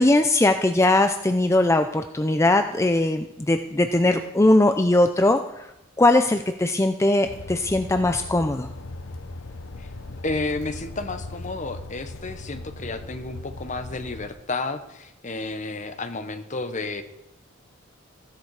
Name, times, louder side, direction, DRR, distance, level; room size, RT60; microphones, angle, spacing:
voice 1, 0.0-5.7 6.0-8.7, left 2 dB, 15° left, 7 dB, 0.5 m, -20 dB
sound 1, 7.2-14.3, left 2 dB, 75° left, 0.9 m, -38 dB
voice 2, 10.2-17.0, left 3 dB, 35° left, 9 dB, 1.0 m, -31 dB
15.5 x 10.5 x 4.8 m, 0.90 s
head